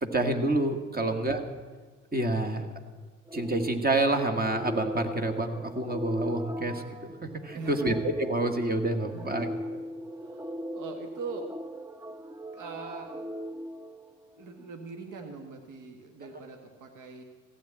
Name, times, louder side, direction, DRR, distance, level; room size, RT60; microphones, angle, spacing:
voice 1, 0.0-1.4 2.1-2.7 3.3-7.0 7.2-9.5, right 2 dB, 25° right, 6 dB, 1.9 m, -28 dB
sound 1, 3.3-14.6, equal, 10° right, 0.6 m, -39 dB
voice 2, 7.5-7.9 9.0-9.3 10.2-11.5 12.5-13.2 14.4-17.2, right 4 dB, 60° right, 5 dB, 1.6 m, -42 dB
15.0 x 8.6 x 8.8 m, 1.4 s
hypercardioid pair, 50°, 35 cm